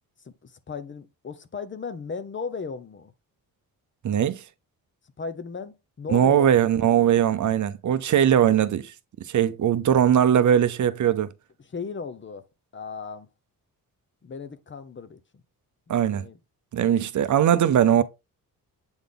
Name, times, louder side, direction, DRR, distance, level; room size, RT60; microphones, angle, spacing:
voice 1, 0.2-3.1 5.2-6.6 11.7-12.4 12.7-13.3 14.2-15.4 15.9-16.4, left 5 dB, 35° left, 0.8 m, -36 dB
voice 2, 4.0-4.4 6.1-8.9 9.2-11.3 15.9-16.2 16.7-18.0, right 9 dB, 55° right, 0.6 m, -20 dB
8.0 x 3.9 x 3.5 m
wide cardioid pair, 125°, 35 cm